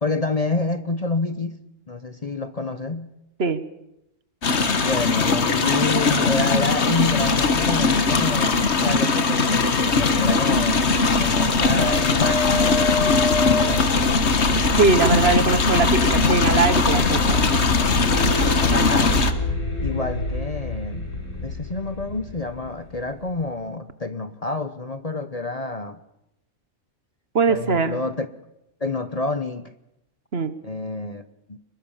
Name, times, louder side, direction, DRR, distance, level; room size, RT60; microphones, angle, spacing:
voice 1, 0.0-1.6 1.9-3.1 4.8-10.9 11.2-12.8 13.4-13.9 18.7-19.2 19.8-21.1 21.4-26.0 27.5-28.3 28.8-29.7 30.6-31.6, left 3 dB, 35° left, 1.0 m, -28 dB
sound 1, 4.4-19.3, left 4 dB, 60° left, 1.7 m, -20 dB
sound 2, 10.1-23.4, left 2 dB, 80° left, 4.3 m, -26 dB
voice 2, 14.8-17.4 27.3-28.0 30.3-30.5, right 4 dB, 55° right, 1.4 m, -21 dB
25.0 x 21.5 x 7.3 m
omnidirectional pair, 1.3 m